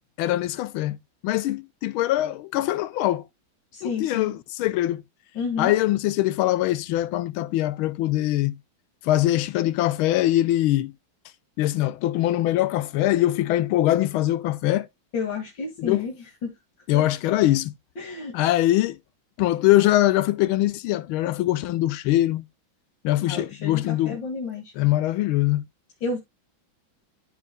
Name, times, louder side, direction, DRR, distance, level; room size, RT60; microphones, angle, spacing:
voice 1, 0.2-1.0 1.2-3.2 3.8-5.0 5.6-8.6 9.0-10.9 11.6-14.9 15.8-16.0 16.9-17.7 18.3-19.0 19.4-22.4 23.0-24.2 24.8-25.6, left 15 dB, 85° left, 1.5 m, -22 dB
voice 2, 3.7-4.4 5.3-5.7 15.1-16.5 16.9-17.0 18.0-18.4 23.3-24.7 26.0-26.2, left 5 dB, 65° left, 2.7 m, -31 dB
13.0 x 4.8 x 2.2 m
omnidirectional pair, 2.2 m